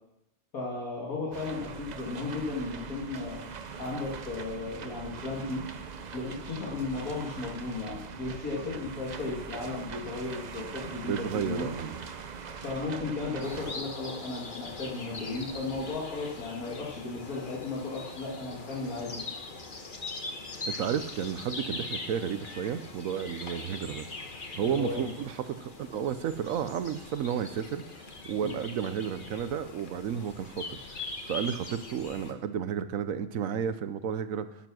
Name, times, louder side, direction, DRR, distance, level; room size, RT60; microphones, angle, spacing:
voice 1, 0.5-3.4 3.8-5.6 6.1-11.7 12.6-19.2 24.6-25.1 28.4-28.5, left 3 dB, 90° left, -4 dB, 2.5 m, -35 dB
sound 1, 1.3-13.7, right 5 dB, 50° right, 0.5 m, -42 dB
voice 2, 11.1-12.0 20.7-24.1 24.6-27.8 28.2-31.0 31.3-34.5, right 8 dB, 70° right, 12 dB, 1.1 m, -32 dB
sound 2, 13.4-32.3, left 3 dB, 40° left, 1.3 m, -41 dB
12.0 x 7.3 x 6.1 m, 0.87 s
omnidirectional pair, 1.5 m